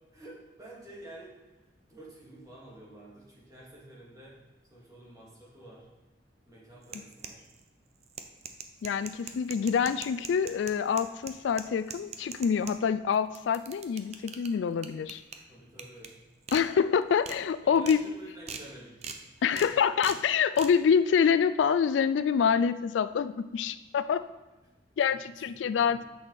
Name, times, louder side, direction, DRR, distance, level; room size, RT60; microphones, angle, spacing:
voice 1, 0.1-4.4 4.7-5.9 6.5-7.4 15.5-16.1 17.6-19.7 25.8-26.0, right 1 dB, 20° right, -6 dB, 2.6 m, -50 dB
sound 1, 6.8-7.6 8.0-12.7 13.1-14.5 14.8-15.4 15.8-16.1 16.5-16.6 17.0-17.4 17.8-18.0 18.5-18.6 19.0-19.2 19.6-19.7 20.0-20.2 20.6-20.7, right 6 dB, 35° right, 0.7 m, -41 dB
voice 2, 8.8-15.2 16.5-18.0 19.4-24.2 25.0-26.0, left 7 dB, 85° left, 13 dB, 0.3 m, -26 dB
9.2 x 6.3 x 4.2 m, 1.1 s
head